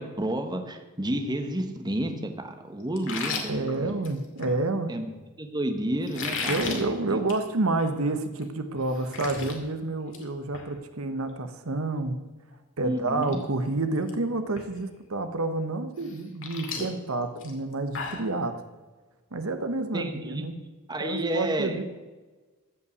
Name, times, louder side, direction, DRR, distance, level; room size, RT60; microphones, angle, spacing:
voice 1, 0.0-3.9 4.9-5.1 5.4-7.2 12.8-13.4 19.9-20.4 20.9-21.8, right 1 dB, 20° right, 5 dB, 1.2 m, -31 dB
sound 1, 3.0-4.5 6.0-6.8 7.2-7.4 7.8-7.9 8.4-8.5 8.8-9.5 9.9-10.2 10.5-10.7 12.5-12.6 13.1-13.4 13.6-14.1 14.6-14.7 16.0-18.3, left 4 dB, 65° left, 2.3 m, -34 dB
voice 2, 3.5-4.9 6.5-12.2 12.8-18.6 19.3-20.5 21.0-21.8, right 2 dB, 75° right, 8 dB, 1.0 m, -29 dB
14.5 x 5.6 x 8.4 m, 1.3 s
head